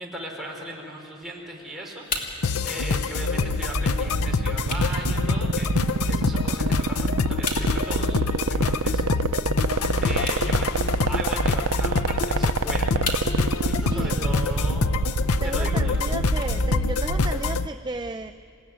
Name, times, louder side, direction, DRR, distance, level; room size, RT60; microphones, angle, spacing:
voice 1, 0.0-9.0 9.5-10.8 11.1-12.9 13.6-14.9 15.4-16.0, right 1 dB, ahead, -2 dB, 4.5 m, -37 dB
sound 1, 1.2-17.2, left 3 dB, 40° left, 2.8 m, -40 dB
sound 2, 2.4-17.7, left 4 dB, 75° left, 0.6 m, -26 dB
sound 3, 3.4-17.4, right 3 dB, 75° right, 0.7 m, -25 dB
voice 2, 10.1-10.6 13.7-14.3 15.4-18.3, right 2 dB, 20° right, 8 dB, 0.5 m, -34 dB
28.0 x 17.0 x 9.7 m, 2.5 s
head